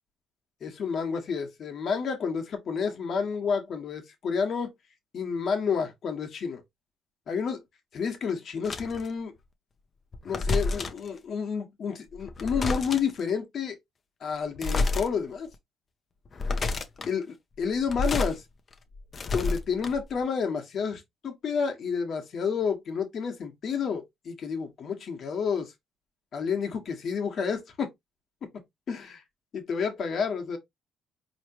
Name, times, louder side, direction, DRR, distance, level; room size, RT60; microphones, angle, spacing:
voice 1, 0.6-4.7 5.1-6.6 7.3-7.6 7.9-9.3 10.2-13.8 14.2-15.5 17.1-18.4 19.3-25.7 26.3-27.9 28.9-29.2 29.5-30.6, left 6 dB, 55° left, 1.3 m, -30 dB
sound 1, 8.6-9.1 10.1-11.1 12.2-13.2 14.6-15.1 15.5-15.6 16.3-17.1 17.7-18.4 18.7-20.1, left 3 dB, 40° left, 0.7 m, -29 dB
4.4 x 3.2 x 2.9 m
cardioid pair, 80°, 0 cm